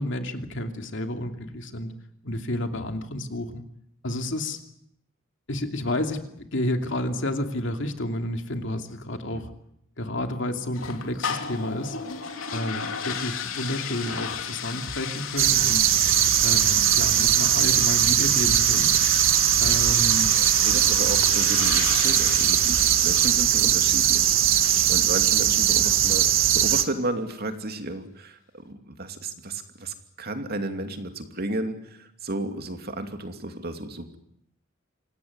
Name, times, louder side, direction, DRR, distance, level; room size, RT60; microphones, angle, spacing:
voice 1, 0.0-1.9 2.2-3.6 4.0-4.6 5.5-9.5 10.0-12.0 12.5-15.8 16.4-18.9 19.6-20.4, left 1 dB, 65° left, 5 dB, 2.8 m, -30 dB
sound 1, 10.7-26.0, left 7 dB, 85° left, 3.1 m, -34 dB
sound 2, 15.4-26.8, right 11 dB, 75° right, 1.6 m, -20 dB
voice 2, 20.6-26.3 26.5-28.4 28.6-34.2, right 2 dB, 50° right, 6 dB, 2.7 m, -33 dB
27.0 x 17.0 x 9.7 m, 0.76 s
head